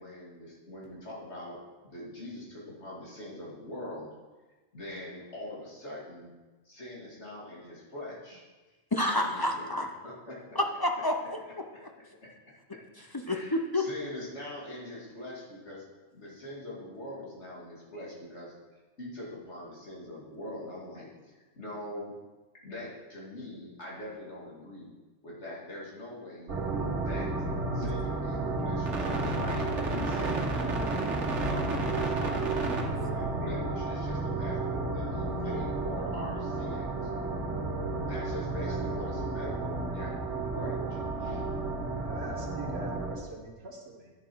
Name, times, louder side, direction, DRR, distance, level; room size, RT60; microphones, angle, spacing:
voice 1, 0.0-4.1 4.7-6.3 6.6-8.4 9.1-9.7 10.0-10.6 11.4-11.5 12.2-12.3 13.3-15.8 16.1-18.5 19.0-21.1 21.5-22.1 22.6-24.9 25.2-26.5 27.0-27.3 27.7-32.4 32.9-37.1 38.0-41.4, left 1 dB, 75° left, -5 dB, 2.7 m, -42 dB
voice 2, 8.9-9.9 10.5-11.4 11.8-11.9 13.1-13.9 32.5-32.9, left 1 dB, 25° left, 3 dB, 0.5 m, -29 dB
sound 1, 26.5-43.2, right 3 dB, 85° right, 1.5 m, -32 dB
voice 3, 42.0-44.1, right 1 dB, 65° right, 0 dB, 1.4 m, -43 dB
10.5 x 7.4 x 4.6 m, 1.2 s
omnidirectional pair, 1.2 m